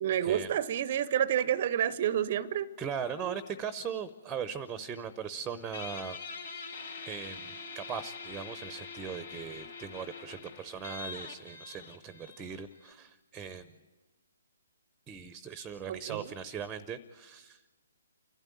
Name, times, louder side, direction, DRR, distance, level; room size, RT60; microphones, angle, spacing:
voice 1, 0.0-2.7 3.2-3.4 15.9-16.3, right 10 dB, 40° right, 19 dB, 0.6 m, -29 dB
voice 2, 2.8-6.2 7.0-13.8 15.1-17.7, right 7 dB, 10° right, 13 dB, 0.8 m, -39 dB
Guitar, 5.7-12.9, left 4 dB, 60° left, 3.5 m, -44 dB
29.0 x 12.5 x 9.2 m, 1.3 s
figure-of-eight pair, 140°, 0 cm